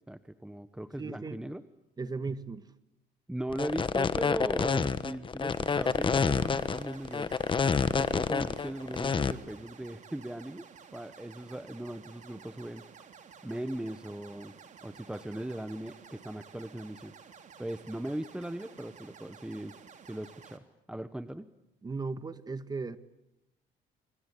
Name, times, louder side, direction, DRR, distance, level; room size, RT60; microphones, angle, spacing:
voice 1, 0.1-1.6 3.3-7.3 7.9-10.7 10.9-12.9 13.4-14.5 14.8-17.1 17.6-19.8 20.0-21.5, right 1 dB, 5° right, 1.1 m, -38 dB
voice 2, 1.0-1.4 2.0-2.7 21.8-23.0, right 4 dB, 25° right, 1.8 m, -36 dB
sound 1, 3.5-9.3, left 5 dB, 30° left, 1.3 m, -28 dB
sound 2, 5.5-20.6, right 7 dB, 45° right, 3.6 m, -53 dB
29.5 x 24.0 x 8.5 m
cardioid pair, 110°, 17 cm